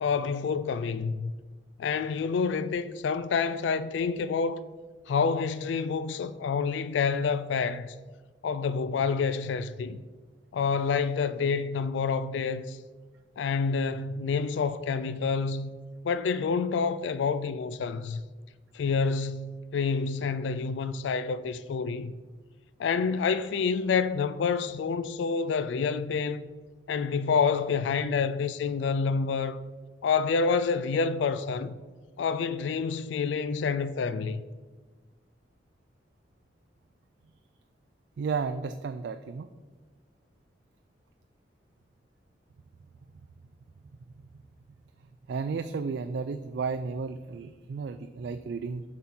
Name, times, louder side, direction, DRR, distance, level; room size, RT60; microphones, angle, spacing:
voice 1, 0.0-1.3 1.8-4.6 5.1-8.0 8.4-10.0 10.5-12.8 13.4-15.7 16.0-18.2 18.7-22.1 22.8-26.4 26.9-29.6 30.0-31.7 32.2-34.4, left 5 dB, 85° left, 0.3 m, -28 dB
voice 2, 38.2-39.5 45.3-48.8, right 5 dB, 70° right, 0.3 m, -33 dB
7.4 x 4.1 x 5.9 m
head